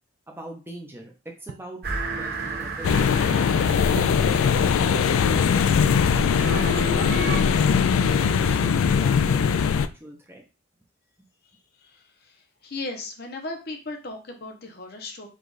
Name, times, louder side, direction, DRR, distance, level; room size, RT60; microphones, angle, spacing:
voice 1, 0.3-1.8 2.1-3.1 3.6-7.4 8.1-10.4, right 1 dB, 10° right, 1 dB, 0.7 m, -42 dB
sound 1, 1.5-1.8 4.0-4.6 6.2-6.5 8.6-9.1, right 6 dB, 80° right, 0.4 m, -40 dB
sound 2, 1.8-9.7, right 3 dB, 50° right, 0.9 m, -34 dB
sound 3, 2.8-9.9, left 6 dB, 75° left, 0.3 m, -21 dB
voice 2, 12.6-15.3, left 2 dB, 50° left, 3 dB, 0.8 m, -35 dB
4.9 x 2.4 x 4.0 m, 0.32 s
head